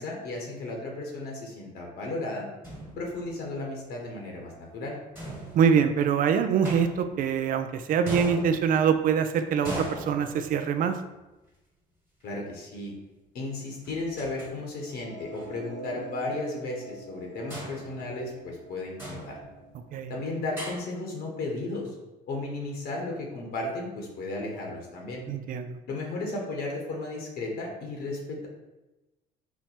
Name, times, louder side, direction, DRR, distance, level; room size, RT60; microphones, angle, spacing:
voice 1, 0.0-2.5 3.0-5.0 12.2-12.9 13.3-19.4 20.1-21.9 22.3-25.2 25.9-28.5, left 2 dB, 70° left, 0 dB, 1.1 m, -34 dB
sound 1, 2.6-3.5 5.1-6.1 6.6-7.5 8.1-9.1 9.6-10.9 12.2-12.3 13.8-14.5 14.8-14.9 15.3-15.5 17.5-18.6 19.0-19.8 20.6-20.8, right 1 dB, 10° right, 1.5 m, -39 dB
voice 2, 5.5-10.9 19.9-20.1 25.3-25.8, right 7 dB, 55° right, 8 dB, 0.4 m, -24 dB
sound 2, 14.8-21.0, right 2 dB, 85° right, 0.8 m, -47 dB
4.4 x 2.2 x 4.3 m, 1.0 s
cardioid pair, 110°, 17 cm